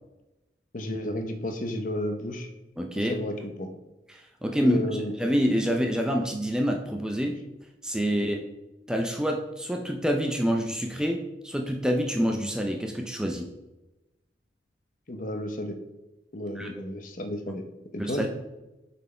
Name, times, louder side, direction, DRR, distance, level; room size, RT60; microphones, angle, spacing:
voice 1, 0.7-2.5 3.0-3.7 4.6-5.1 8.1-8.4 15.1-15.8 16.3-17.6 17.9-18.3, left 1 dB, 45° left, 6 dB, 0.7 m, -32 dB
voice 2, 2.8-3.2 4.4-4.8 5.2-7.4 7.8-8.4 8.9-13.5 16.6-16.7 18.0-18.3, equal, 5° right, 2 dB, 0.5 m, -27 dB
6.7 x 4.2 x 4.3 m, 1.0 s
head